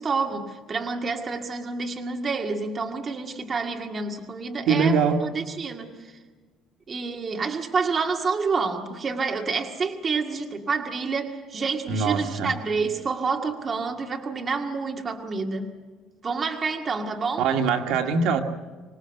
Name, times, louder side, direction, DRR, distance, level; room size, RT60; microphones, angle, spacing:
voice 1, 0.0-6.2 6.9-15.8 16.2-17.5, right 4 dB, 25° right, 3 dB, 2.0 m, -28 dB
voice 2, 4.7-5.2 11.9-12.5 17.4-18.4, right 5 dB, 65° right, 4 dB, 2.0 m, -22 dB
25.5 x 19.0 x 8.0 m, 1.4 s
cardioid pair, 165°, 0 cm